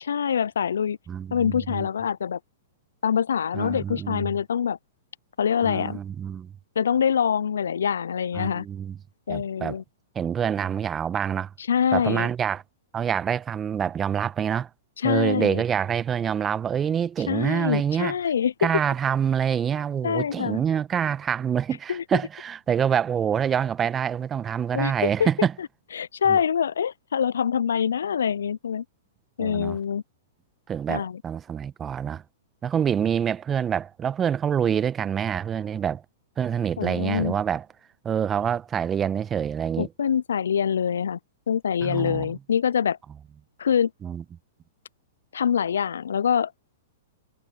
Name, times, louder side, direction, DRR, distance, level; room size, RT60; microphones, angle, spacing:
voice 1, 0.0-1.0 1.3-2.4 3.0-4.8 5.4-6.0 6.8-8.6 9.3-9.8 11.7-12.3 15.0-15.6 17.3-18.8 20.0-20.6 21.9-22.0 24.7-25.3 25.9-28.8 29.4-30.0 30.9-31.2 36.8-37.3 39.8-41.2 41.5-43.0 43.6-43.9 45.3-46.5, left 7 dB, 75° left, 0.6 m, -25 dB
voice 2, 1.1-1.9 3.5-4.3 5.6-6.5 8.3-9.0 9.3-9.8 10.1-11.5 11.9-12.6 12.9-14.7 15.0-18.1 18.6-25.5 26.3-26.4 29.4-29.8 30.7-32.2 32.6-36.0 36.4-37.6 38.0-39.9 41.8-42.3 44.0-44.2, right 8 dB, 20° right, 1.3 m, -26 dB
hypercardioid pair, 110°, 0 cm